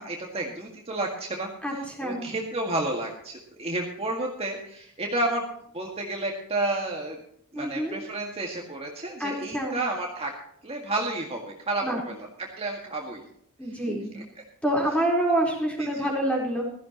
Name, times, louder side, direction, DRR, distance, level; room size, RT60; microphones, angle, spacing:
voice 1, 0.0-1.5 2.0-5.4 5.7-7.2 7.5-10.3 10.6-12.1 12.4-13.3 14.2-14.3 15.8-16.1, right 2 dB, 25° right, 0 dB, 1.9 m, -31 dB
voice 2, 1.6-2.3 7.5-8.0 9.2-9.8 11.8-12.0 13.6-14.1 14.6-16.6, right 1 dB, 5° left, -1 dB, 4.1 m, -27 dB
16.5 x 14.0 x 3.0 m, 0.69 s
head